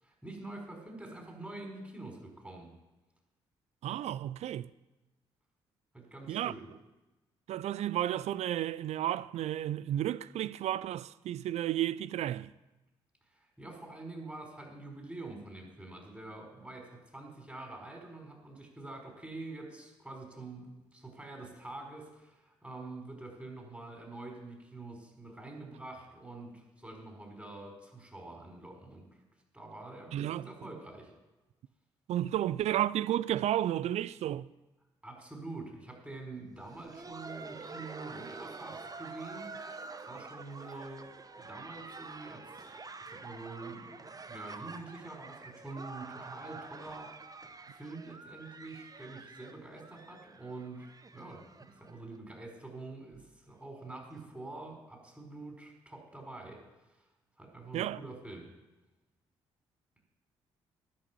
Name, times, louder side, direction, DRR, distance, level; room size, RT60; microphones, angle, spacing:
voice 1, 0.0-2.7 5.9-6.7 13.3-29.1 29.5-31.1 35.0-39.5 40.1-41.1 41.4-47.1 47.7-57.1 57.4-58.5, right 2 dB, 10° right, 4.9 m, -46 dB
voice 2, 3.8-4.7 6.3-6.5 7.5-12.5 30.1-30.5 32.1-34.5 57.7-58.0, right 12 dB, 55° right, 0.4 m, -32 dB
Laughter, 36.5-52.2 52.4-52.5 53.1-53.2 53.8-54.0 55.1-55.2, right 3 dB, 30° right, 0.9 m, -47 dB
11.0 x 6.2 x 8.4 m
hypercardioid pair, 45°, 13 cm